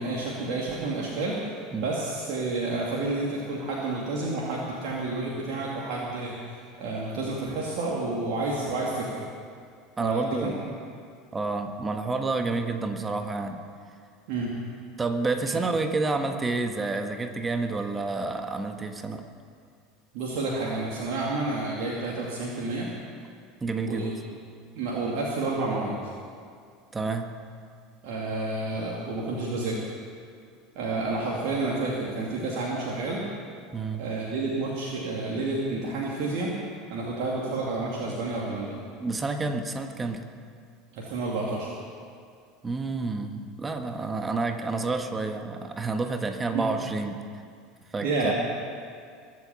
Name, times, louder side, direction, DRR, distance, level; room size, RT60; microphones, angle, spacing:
voice 1, 0.0-1.4 1.7-9.3 10.0-10.5 14.3-14.6 15.5-15.6 20.1-22.9 23.9-24.1 24.7-26.0 28.0-29.8 30.8-33.2 34.0-36.5 36.9-38.8 40.9-41.7 46.5-46.7 48.0-48.3, right 2 dB, 60° right, -4 dB, 2.5 m, -30 dB
voice 2, 10.0-10.7 11.3-13.6 15.0-19.2 23.6-24.1 26.9-27.3 33.7-34.0 39.0-40.2 42.6-47.3 47.9-48.3, right 3 dB, 20° right, 6 dB, 1.5 m, -29 dB
22.5 x 8.5 x 7.1 m, 2.2 s
hypercardioid pair, 80°, 0 cm